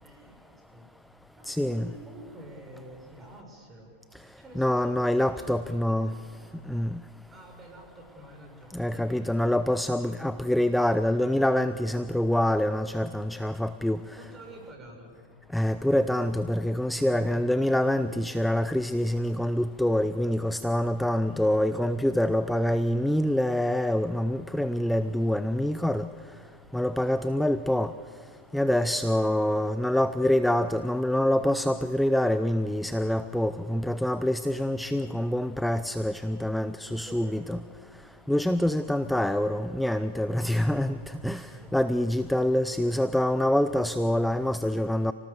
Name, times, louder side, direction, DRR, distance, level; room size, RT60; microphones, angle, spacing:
voice 1, 0.0-0.9 1.4-3.9 4.4-6.2 7.3-9.4 9.7-10.2 14.1-15.1 16.9-17.9 21.2-21.7 29.3-30.2 36.9-37.6 40.4-41.0 41.4-42.1, right 1 dB, 20° right, 2 dB, 6.4 m, -49 dB
voice 2, 1.5-1.9 4.6-6.1 6.7-7.0 8.7-14.0 15.5-26.1 26.7-27.9 28.5-37.6 38.3-45.1, left 1 dB, ahead, 12 dB, 0.6 m, -26 dB
28.0 x 18.5 x 7.0 m, 2.1 s
hypercardioid pair, 120°, 0 cm